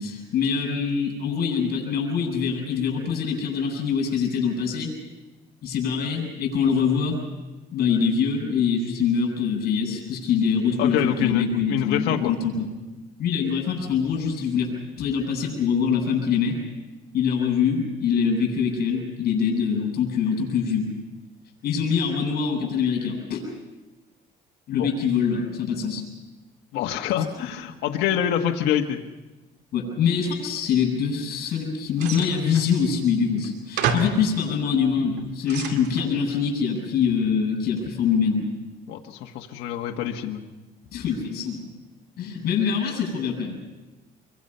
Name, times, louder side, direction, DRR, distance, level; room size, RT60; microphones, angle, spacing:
voice 1, 0.0-4.9 5.6-7.2 7.7-12.7 13.2-14.7 15.0-16.6 17.1-20.9 21.6-23.4 24.7-26.0 29.7-38.5 40.9-41.7 42.2-43.6, left 6 dB, 65° left, 0 dB, 7.9 m, -24 dB
voice 2, 10.8-11.4 11.7-12.3 24.7-24.9 26.7-29.0 38.9-40.4, left 10 dB, 85° left, 2 dB, 1.4 m, -26 dB
sound 1, 32.0-32.7 33.4-33.5 33.8-34.3 35.0-36.1, right 6 dB, 85° right, 2.3 m, -29 dB
27.0 x 24.0 x 5.6 m, 1.1 s
cardioid pair, 110°, 17 cm